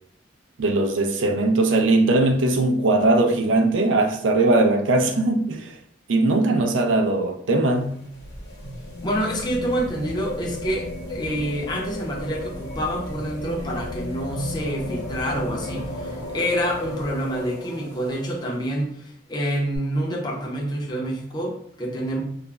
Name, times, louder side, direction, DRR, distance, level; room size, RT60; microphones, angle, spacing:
voice 1, 0.6-5.8 6.1-8.0, right 2 dB, 85° right, 0.4 m, -20 dB
sound 1, 7.7-18.5 19.7-19.8, left 2 dB, 55° left, 0.9 m, -34 dB
voice 2, 9.0-22.2, equal, 25° left, 0.5 m, -27 dB
2.4 x 2.0 x 3.2 m
head